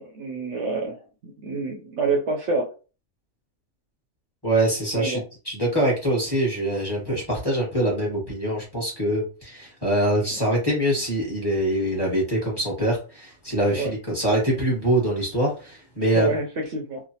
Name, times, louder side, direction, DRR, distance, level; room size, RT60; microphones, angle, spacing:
voice 1, 0.0-2.7 4.9-5.2 13.8-13.9 16.1-17.0, right 3 dB, 65° right, 1 dB, 0.8 m, -27 dB
voice 2, 4.4-16.4, right 1 dB, 20° left, -4 dB, 1.2 m, -24 dB
3.1 x 2.1 x 2.7 m, 0.33 s
omnidirectional pair, 1.4 m